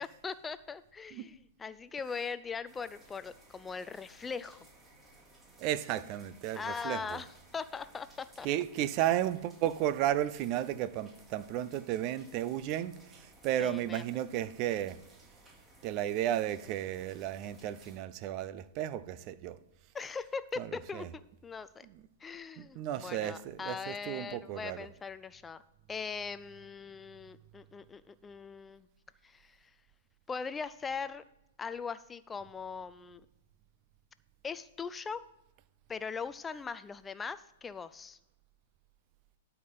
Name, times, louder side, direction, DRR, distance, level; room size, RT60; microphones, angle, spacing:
voice 1, 0.0-4.6 6.5-8.5 13.6-14.0 19.9-21.9 22.2-25.6 25.9-28.9 29.2-29.7 30.3-31.2 31.6-33.2 34.4-35.2 35.9-38.2, left 5 dB, 15° left, 0.4 m, -40 dB
sound 1, 2.7-18.0, right 1 dB, 20° right, 3.6 m, -59 dB
voice 2, 5.6-7.2 8.4-12.9 13.2-15.0 15.8-19.6 20.6-20.7 20.9-21.1 22.6-24.8, right 12 dB, 40° right, 0.6 m, -33 dB
12.0 x 4.7 x 5.4 m
hypercardioid pair, 110°, 0 cm